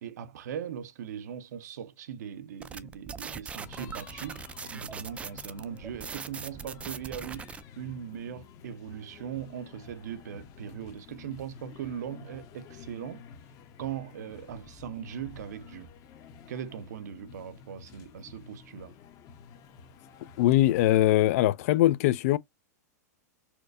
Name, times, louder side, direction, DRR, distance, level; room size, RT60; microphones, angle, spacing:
voice 1, 0.0-13.3 13.8-15.9 16.5-19.0, right 9 dB, 75° right, 0.6 m, -40 dB
sound 1, 2.6-7.6, right 6 dB, 15° right, 0.3 m, -41 dB
sound 2, 3.6-20.9, left 6 dB, 40° left, 0.8 m, -50 dB
voice 2, 20.4-22.4, left 14 dB, 60° left, 0.4 m, -22 dB
4.3 x 2.2 x 2.5 m
hypercardioid pair, 125°, 9 cm